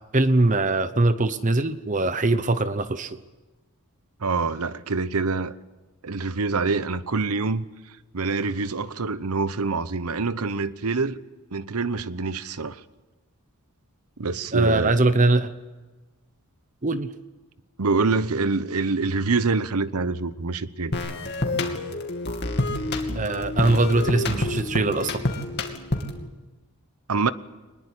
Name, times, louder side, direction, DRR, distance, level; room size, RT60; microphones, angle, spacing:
voice 1, 0.0-3.2 14.5-15.5 16.8-17.1 23.1-25.3, right 2 dB, 35° right, 0.9 m, -22 dB
voice 2, 4.2-5.5 6.0-7.6 8.1-11.2 11.5-12.8 14.2-15.0 17.8-21.1 27.1-27.3, right 4 dB, 80° right, 1.0 m, -25 dB
sound 1, 20.9-26.3, left 2 dB, 50° left, 2.6 m, -28 dB
23.5 x 21.0 x 8.5 m
head